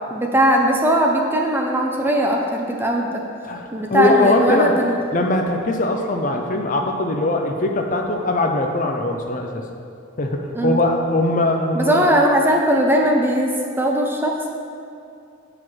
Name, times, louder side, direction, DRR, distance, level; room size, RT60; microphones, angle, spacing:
voice 1, 0.1-3.2 3.7-5.0 10.5-10.8 11.7-14.5, right 1 dB, 10° right, 0 dB, 0.6 m, -19 dB
voice 2, 3.9-4.7 5.1-9.6 10.2-12.0, left 2 dB, 40° left, 3 dB, 0.6 m, -21 dB
7.4 x 4.9 x 6.1 m, 2.5 s
head